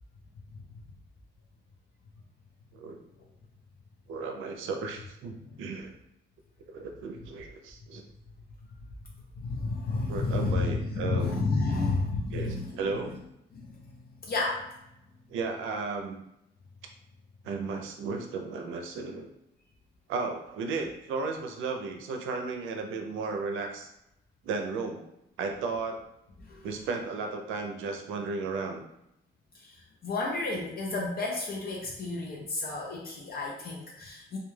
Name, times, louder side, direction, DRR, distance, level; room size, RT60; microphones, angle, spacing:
voice 1, 4.1-5.9 6.7-8.0 10.1-11.3 12.3-13.1 15.3-16.2 17.4-19.3 20.1-23.9 24.4-25.1 25.4-26.0 26.6-28.8, right 4 dB, 85° right, 4 dB, 0.5 m, -34 dB
voice 2, 9.4-12.8 13.5-13.7 14.2-14.7 26.4-26.7 29.5-29.7 30.0-34.4, left 3 dB, 50° left, -2 dB, 0.5 m, -31 dB
2.2 x 2.2 x 3.1 m, 0.82 s
cardioid pair, 90°, 20 cm